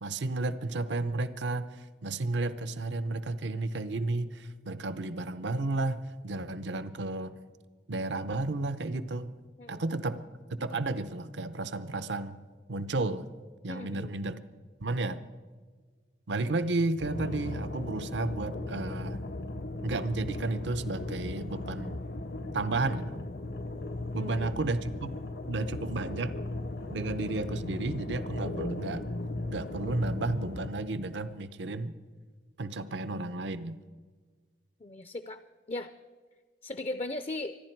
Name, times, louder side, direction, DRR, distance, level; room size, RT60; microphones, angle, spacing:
voice 1, 0.0-7.4 7.9-9.3 9.7-10.2 10.6-12.4 12.7-13.3 13.6-14.4 14.8-15.2 16.3-19.2 19.8-22.0 22.5-23.2 24.1-25.1 25.5-26.3 26.9-29.0 29.5-31.9 32.6-33.8, right 2 dB, 80° right, 13 dB, 0.7 m, -32 dB
voice 2, 13.7-14.1 24.1-24.5 34.8-35.4 35.7-35.9 36.6-37.6, left 2 dB, 35° left, 12 dB, 0.4 m, -37 dB
sound 1, 17.0-30.7, left 2 dB, 60° left, 0.7 m, -37 dB
25.0 x 11.0 x 4.5 m, 1.5 s
head